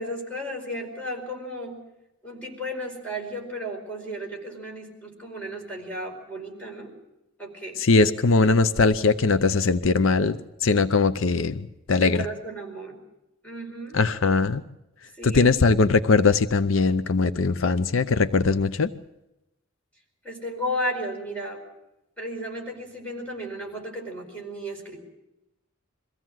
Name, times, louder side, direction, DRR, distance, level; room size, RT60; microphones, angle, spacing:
voice 1, 0.0-1.8 2.2-6.9 7.4-7.8 12.0-13.0 13.4-14.0 15.2-15.5 20.2-21.6 22.2-25.0, equal, 5° left, -1 dB, 4.7 m, -34 dB
voice 2, 7.8-12.3 13.9-14.6 15.2-18.9, left 4 dB, 75° left, 11 dB, 0.7 m, -21 dB
23.0 x 16.0 x 7.6 m, 0.91 s
head